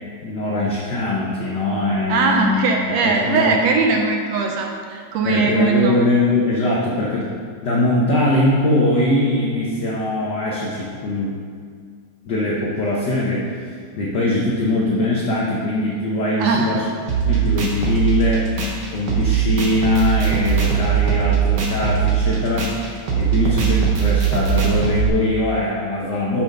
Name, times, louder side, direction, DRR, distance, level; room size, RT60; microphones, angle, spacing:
voice 1, 0.2-2.6 3.0-3.5 5.2-7.3 7.6-11.3 12.3-16.8 17.2-18.5 18.9-22.8 23.2-26.4, left 2 dB, 75° left, -5 dB, 0.9 m, -21 dB
voice 2, 2.1-6.1 16.4-16.8, right 4 dB, 75° right, 2 dB, 1.6 m, -20 dB
sound 1, 17.1-25.1, right 7 dB, 60° right, 1.2 m, -20 dB
6.9 x 6.1 x 5.4 m, 2.1 s
omnidirectional pair, 3.3 m